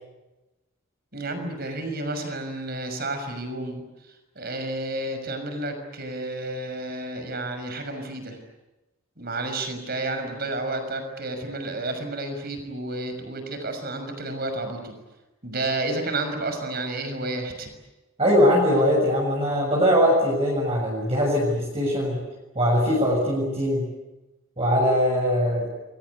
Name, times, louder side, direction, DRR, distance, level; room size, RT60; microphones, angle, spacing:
voice 1, 1.1-8.4 9.2-14.9 15.4-17.7, right 2 dB, 45° right, 7 dB, 6.1 m, -31 dB
voice 2, 18.2-22.2 22.6-23.9 24.6-25.7, equal, 30° right, -3 dB, 7.0 m, -21 dB
28.5 x 23.5 x 8.4 m, 1.0 s
head